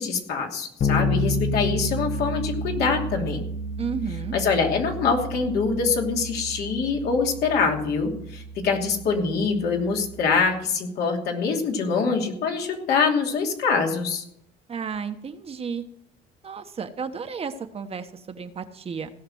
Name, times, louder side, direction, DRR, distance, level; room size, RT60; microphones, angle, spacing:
voice 1, 0.0-3.4 4.3-14.2, left 5 dB, 70° left, 1 dB, 2.9 m, -24 dB
Bass guitar, 0.8-10.4, left 1 dB, 55° left, 1.2 m, -30 dB
voice 2, 3.8-4.4 14.7-15.8 16.4-19.1, right 6 dB, 35° right, 8 dB, 1.1 m, -32 dB
17.0 x 5.9 x 7.9 m, 0.72 s
cardioid pair, 110°, 17 cm